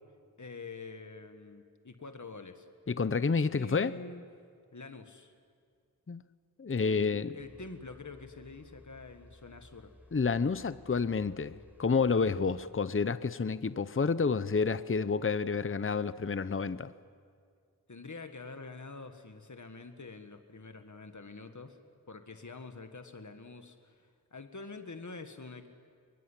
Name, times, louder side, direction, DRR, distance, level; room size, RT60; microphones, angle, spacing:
voice 1, 0.4-2.7 3.5-4.2 4.7-5.3 6.8-9.9 17.9-21.8 22.1-25.7, left 3 dB, 50° left, 7 dB, 1.6 m, -46 dB
voice 2, 2.9-3.9 6.1-6.2 6.6-7.3 10.1-16.9, left 5 dB, 35° left, 15 dB, 0.7 m, -29 dB
sound 1, 7.4-12.7, equal, 5° right, 4.4 m, -58 dB
24.0 x 22.0 x 10.0 m, 2.1 s
wide cardioid pair, 50°, 37 cm